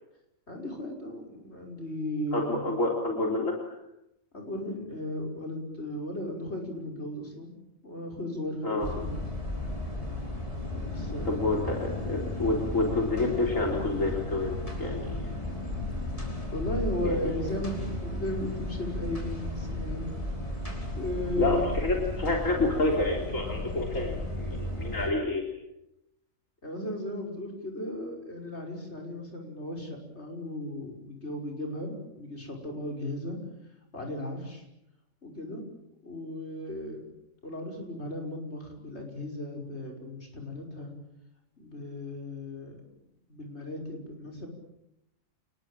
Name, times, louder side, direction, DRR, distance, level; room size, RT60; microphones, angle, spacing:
voice 1, 0.5-2.7 4.3-7.5 7.8-9.3 10.8-11.5 16.5-20.1 21.0-21.6 26.6-33.4 33.9-34.6 35.2-35.6 36.0-37.1 37.4-40.9 41.6-43.0 43.3-44.5, left 1 dB, 55° left, 1 dB, 6.0 m, -36 dB
voice 2, 2.3-3.8 8.6-8.9 11.2-15.3 17.0-17.6 21.4-25.5, left 2 dB, 75° left, 0 dB, 4.0 m, -29 dB
sound 1, 8.8-25.1, left 1 dB, 25° left, 5.7 m, -34 dB
28.5 x 20.5 x 9.0 m, 0.86 s
omnidirectional pair, 1.4 m